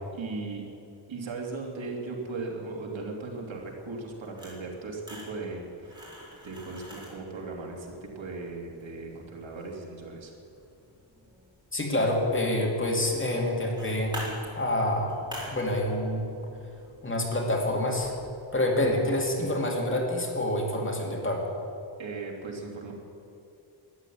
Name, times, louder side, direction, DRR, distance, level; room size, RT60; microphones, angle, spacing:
voice 1, 0.1-0.6 1.1-6.1 6.4-10.3 22.0-22.9, right 3 dB, 70° right, 0 dB, 3.1 m, -37 dB
sound 1, 3.3-19.9, equal, 10° right, 4.4 m, -48 dB
voice 2, 11.7-14.2 14.6-15.1 15.5-16.2 17.0-18.1 18.5-21.4, left 1 dB, 25° left, 0 dB, 2.5 m, -27 dB
13.5 x 11.0 x 9.5 m, 2.7 s
wide cardioid pair, 145°, 48 cm